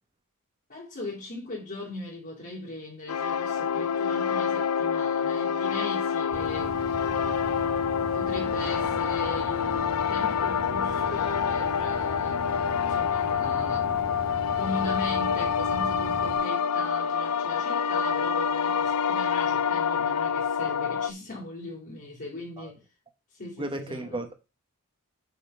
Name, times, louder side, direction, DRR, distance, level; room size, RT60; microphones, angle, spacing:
voice 1, 0.7-6.8 8.1-12.4 12.8-14.1 14.5-22.8 23.4-24.2, left 2 dB, 45° left, 3.2 m, -39 dB
sound 1, 3.1-21.1, left 7 dB, 80° left, 0.5 m, -27 dB
sound 2, 6.3-16.4, right 1 dB, 65° right, 1.5 m, -40 dB
voice 2, 23.6-24.3, right 1 dB, 20° right, 1.3 m, -34 dB
6.8 x 4.3 x 5.5 m
head